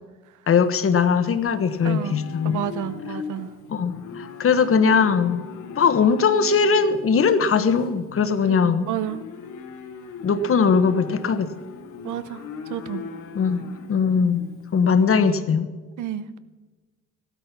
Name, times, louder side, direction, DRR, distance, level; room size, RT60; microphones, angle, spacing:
Livestock farm animals working animals, 0.5-15.3, left 6 dB, 80° left, 1.6 m, -40 dB
voice 1, 0.5-2.6 3.7-5.4 5.8-8.9 10.2-11.5 13.3-15.7, left 5 dB, 45° left, 10 dB, 1.2 m, -20 dB
voice 2, 1.8-3.5 8.4-9.2 12.0-13.0 16.0-16.4, right 10 dB, 80° right, 14 dB, 0.9 m, -31 dB
15.5 x 12.5 x 5.9 m, 1.3 s
cardioid pair, 90°, 30 cm